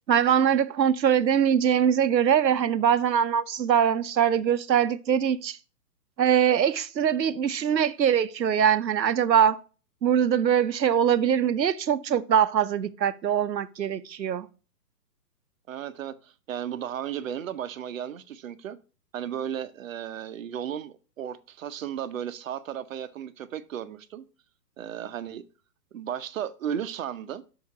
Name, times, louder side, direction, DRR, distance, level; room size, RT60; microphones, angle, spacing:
voice 1, 0.1-5.6 6.2-9.6 10.0-14.5, right 8 dB, 85° right, 0.8 m, -22 dB
voice 2, 15.7-18.8 19.1-24.2 24.8-25.4 25.9-27.4, right 9 dB, 55° right, 0.8 m, -34 dB
6.4 x 4.8 x 5.6 m
hypercardioid pair, 135°, 49 cm